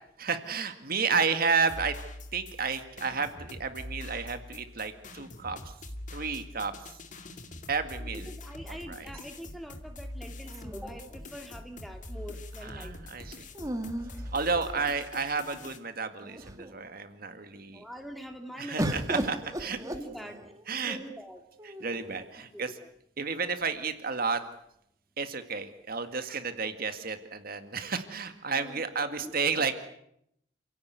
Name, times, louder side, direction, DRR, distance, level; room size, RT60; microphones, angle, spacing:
voice 1, 0.2-2.0 2.3-5.7 6.1-7.0 7.7-8.3 8.7-9.1 12.6-13.5 14.3-17.8 18.6-19.8 20.7-21.0 21.6-22.7 23.2-24.4 25.2-29.8, right 5 dB, 50° right, 8 dB, 2.0 m, -31 dB
sound 1, 1.6-15.8, left 1 dB, 40° left, 2.2 m, -44 dB
voice 2, 8.0-12.9 17.7-19.2 19.7-20.4 20.7-21.4 22.4-22.9 28.5-28.8 29.2-29.3 29.6-29.7, equal, ahead, 5 dB, 2.4 m, -44 dB
sound 2, 10.5-11.6 13.5-15.1 15.8-15.9 16.2-16.8 18.8-20.7 21.6-22.3, right 1 dB, 15° right, 2.2 m, -36 dB
29.0 x 16.5 x 9.5 m, 0.75 s
head